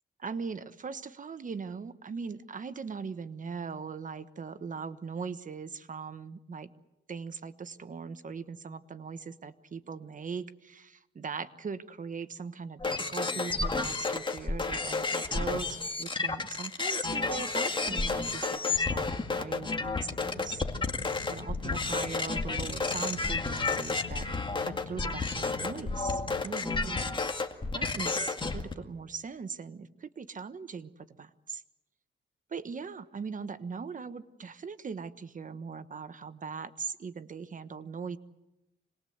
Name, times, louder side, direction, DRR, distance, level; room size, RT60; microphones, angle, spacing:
voice 1, 0.2-6.7 7.1-20.6 21.3-24.3 24.6-27.2 27.7-31.6 32.5-38.2, right 5 dB, 45° right, 12 dB, 1.2 m, -40 dB
sound 1, 12.8-28.7, left 3 dB, 25° left, 2.1 m, -31 dB
sound 2, 19.2-26.4, left 10 dB, 85° left, 1.0 m, -46 dB
26.5 x 20.5 x 8.0 m, 0.94 s
cardioid pair, 100°, 19 cm